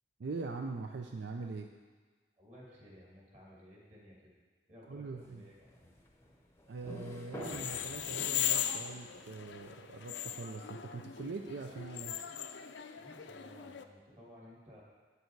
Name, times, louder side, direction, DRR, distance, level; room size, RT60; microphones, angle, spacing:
voice 1, 0.2-1.7 4.9-5.4 6.7-12.3, right 3 dB, 75° right, 4 dB, 0.5 m, -42 dB
voice 2, 2.4-4.3 4.7-5.9 12.9-14.8, equal, 40° right, -4 dB, 2.4 m, -56 dB
sound 1, 5.0-9.7, equal, 15° left, 0.7 m, -50 dB
sound 2, 7.3-13.8, left 10 dB, 80° left, 0.5 m, -38 dB
9.4 x 6.9 x 4.6 m, 1.4 s
head